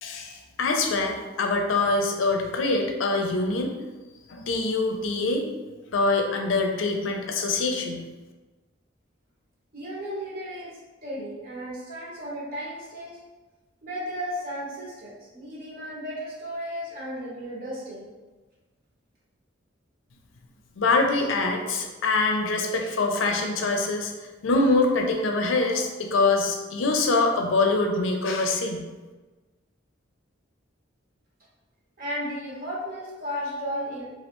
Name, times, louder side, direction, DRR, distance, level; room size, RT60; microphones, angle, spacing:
voice 1, 0.0-3.7 4.3-5.5 5.9-8.0 20.8-24.1 24.4-28.8, left 3 dB, 75° left, 3 dB, 0.5 m, -24 dB
voice 2, 9.7-13.2 13.8-18.1 32.0-34.1, equal, 50° right, -5 dB, 0.9 m, -34 dB
3.1 x 2.3 x 2.9 m, 1.2 s
head